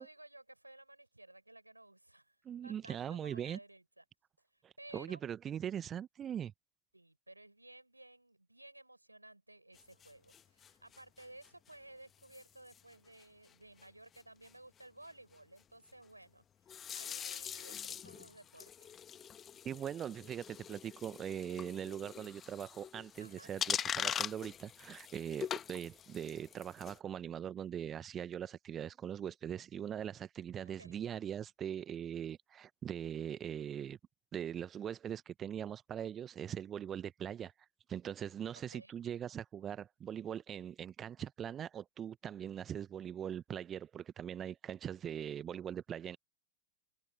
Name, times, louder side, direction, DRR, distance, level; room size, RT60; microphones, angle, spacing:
voice 1, 0.0-2.4 2.6-4.0 4.5-5.2 6.9-16.4 16.9-18.9 23.2-23.5 30.6-31.0 38.5-39.0, right 1 dB, 85° right, 7.3 m, -56 dB
voice 2, 2.4-3.6 4.6-6.5 19.6-34.0 34.3-37.5 37.9-46.2, right 9 dB, 25° right, 1.1 m, -41 dB
sound 1, 9.7-11.7 12.2-12.4 12.7-12.9 13.2-13.3 13.5-13.6 13.8-13.9 14.1-14.5 16.7-27.0, left 8 dB, 25° left, 1.7 m, -43 dB
figure-of-eight pair, 90°, 0 cm